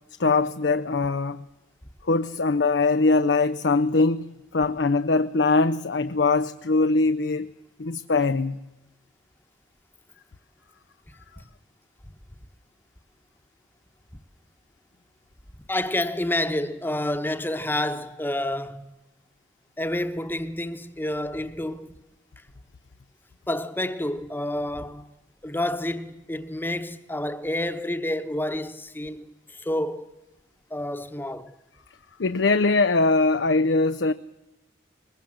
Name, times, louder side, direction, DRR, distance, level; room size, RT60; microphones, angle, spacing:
voice 1, 0.2-1.4 2.1-7.5 7.8-8.6 32.2-34.1, left 3 dB, 70° left, 0.7 m, -22 dB
voice 2, 15.7-18.9 19.8-22.0 23.5-25.1 25.4-30.1 30.7-31.5, left 1 dB, 10° left, 1.1 m, -29 dB
21.5 x 21.0 x 7.7 m
head